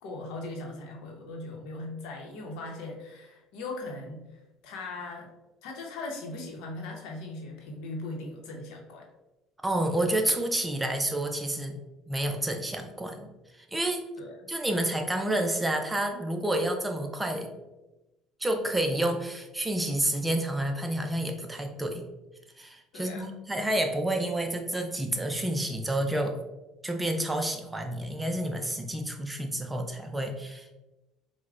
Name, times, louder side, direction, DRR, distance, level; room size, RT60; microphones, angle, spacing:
voice 1, 0.0-5.3 5.6-9.1 14.2-14.5 22.9-23.3, left 2 dB, 75° left, 1 dB, 0.8 m, -39 dB
voice 2, 9.6-11.8 12.1-13.3 13.5-14.1 14.5-17.5 18.4-22.1 22.6-26.3 26.8-30.7, right 1 dB, 10° right, 4 dB, 0.4 m, -29 dB
4.6 x 2.1 x 2.4 m, 1.0 s
supercardioid pair, 95°, 0 cm